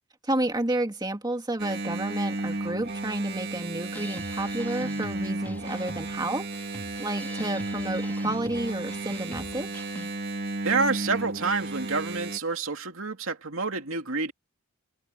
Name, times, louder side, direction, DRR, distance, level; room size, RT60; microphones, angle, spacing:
voice 1, 0.2-9.9, right 1 dB, 20° right, 2.3 m, -31 dB
Engine, 1.6-12.4, right 2 dB, 50° right, 2.5 m, -33 dB
sound 1, 3.9-10.2, left 1 dB, 10° left, 2.0 m, -44 dB
voice 2, 10.6-14.3, right 4 dB, 70° right, 2.9 m, -28 dB
open air
head